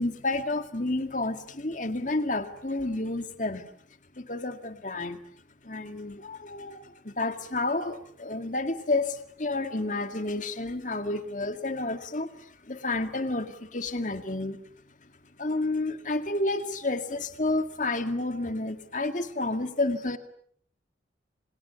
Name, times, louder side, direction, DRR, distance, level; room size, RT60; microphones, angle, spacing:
voice 1, 0.0-3.7 4.2-5.2 5.6-14.6 15.4-20.2, left 2 dB, 40° left, 8 dB, 2.1 m, -30 dB
29.5 x 28.0 x 7.0 m, 0.63 s
head